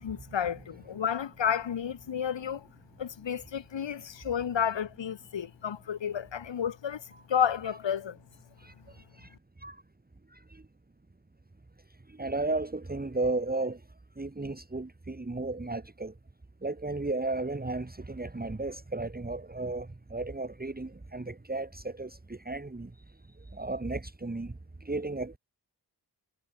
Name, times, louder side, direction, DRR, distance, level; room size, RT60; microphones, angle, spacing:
voice 1, 0.0-2.7 3.0-8.2, left 8 dB, 85° left, 1.2 m, -31 dB
voice 2, 12.2-13.8 14.2-16.1 16.6-22.9 23.5-24.5 24.8-25.4, right 2 dB, 20° right, 1.7 m, -34 dB
wide cardioid pair, 80°, 43 cm